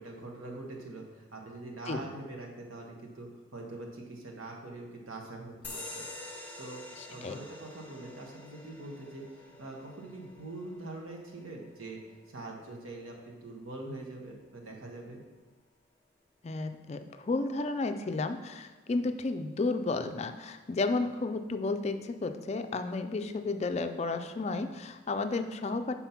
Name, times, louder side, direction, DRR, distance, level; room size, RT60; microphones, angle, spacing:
voice 1, 0.0-6.1 6.6-6.8 7.1-15.2 21.0-21.1, right 2 dB, 85° right, 0 dB, 1.2 m, -44 dB
sound 1, 5.6-12.7, left 2 dB, 10° left, 0.7 m, -47 dB
voice 2, 16.4-26.0, left 3 dB, 30° left, 8 dB, 0.3 m, -32 dB
5.8 x 4.2 x 5.6 m, 1.3 s
head